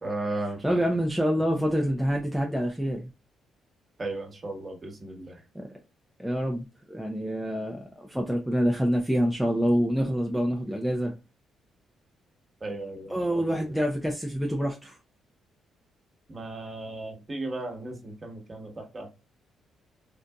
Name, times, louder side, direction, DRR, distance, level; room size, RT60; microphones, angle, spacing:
voice 1, 0.0-1.0 4.0-5.4 12.6-13.7 16.3-19.1, right 2 dB, 30° right, 1.2 m, -36 dB
voice 2, 0.6-3.1 5.5-5.7 6.2-11.1 13.1-15.0, equal, ahead, 0.6 m, -26 dB
3.9 x 2.5 x 2.2 m
cardioid pair, 90°, 0 cm